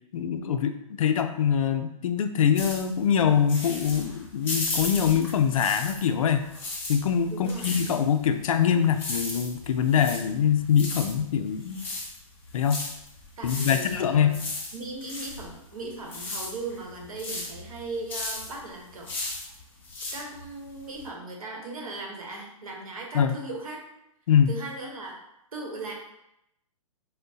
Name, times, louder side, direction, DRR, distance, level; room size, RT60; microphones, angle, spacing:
voice 1, 0.1-6.4 6.9-11.8 12.5-12.8 13.4-14.4 23.1-23.3 24.3-24.5, left 8 dB, 70° left, 7 dB, 0.4 m, -24 dB
sound 1, 2.6-6.2 6.4-21.1, left 2 dB, 10° left, 0.7 m, -36 dB
voice 2, 7.3-7.8 13.4-14.4 14.7-19.1 20.1-23.8 24.5-25.2 25.5-25.9, right 2 dB, 80° right, 0 dB, 1.0 m, -38 dB
4.4 x 2.1 x 2.6 m, 0.83 s
hypercardioid pair, 150°, 18 cm